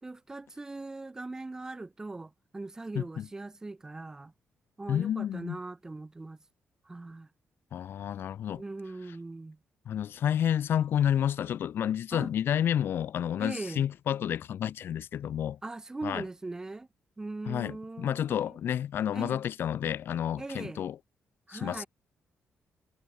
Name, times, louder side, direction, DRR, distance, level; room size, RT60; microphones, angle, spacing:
voice 1, 0.0-4.3 4.8-6.4 6.8-7.3 8.5-9.6 12.1-12.3 13.4-13.9 15.6-16.9 17.2-18.6 19.1-19.4 20.4-20.9 21.5-21.9, right 2 dB, 15° right, 6.3 m, -40 dB
voice 2, 2.9-3.3 4.9-5.6 7.7-8.6 9.9-15.6 16.0-16.2 17.5-21.0 21.5-21.8, left 10 dB, 60° left, 4.1 m, -30 dB
cardioid pair, 165°, 4 cm